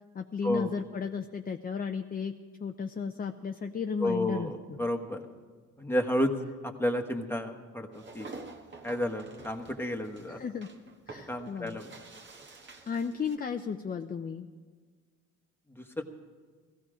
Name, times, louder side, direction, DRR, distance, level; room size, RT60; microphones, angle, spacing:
voice 1, 0.1-2.3 2.6-4.8 10.3-10.7 11.1-11.8 12.9-14.5, left 6 dB, 30° left, 5 dB, 0.6 m, -34 dB
voice 2, 4.0-5.2 5.8-6.3 6.6-8.3 8.8-10.4 11.3-11.9 15.7-16.0, left 1 dB, 5° left, 4 dB, 1.3 m, -31 dB
sound 1, 7.9-13.4, right 3 dB, 40° right, 1.4 m, -48 dB
16.5 x 14.5 x 5.0 m, 1.5 s
cardioid pair, 90°, 30 cm